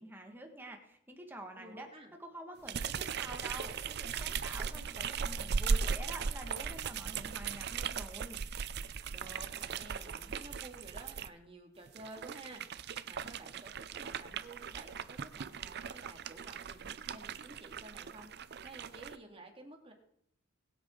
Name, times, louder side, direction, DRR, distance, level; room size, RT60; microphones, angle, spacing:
voice 1, 0.0-8.4, right 1 dB, 10° right, 3 dB, 1.7 m, -48 dB
voice 2, 1.6-2.1 9.1-18.3 18.6-19.9, right 2 dB, 30° right, 2 dB, 2.2 m, -52 dB
sound 1, 2.7-11.3 11.9-19.2, right 6 dB, 55° right, 0.5 m, -38 dB
21.5 x 8.2 x 3.8 m, 0.72 s
head